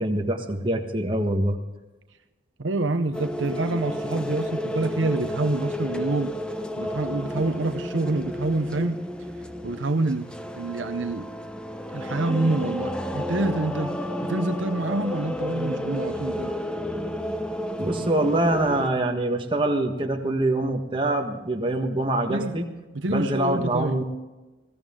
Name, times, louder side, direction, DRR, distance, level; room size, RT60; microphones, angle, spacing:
voice 1, 0.0-1.6 17.8-22.6 23.1-24.0, right 1 dB, 25° right, 3 dB, 1.5 m, -24 dB
voice 2, 2.6-6.3 6.8-9.0 9.6-10.3 10.6-11.3 11.9-13.9 14.2-16.5 22.3-22.6 22.9-24.0, right 2 dB, 75° right, 8 dB, 0.8 m, -27 dB
sound 1, 3.1-18.9, equal, 5° left, 0.8 m, -31 dB
20.5 x 15.5 x 3.8 m, 1.1 s
head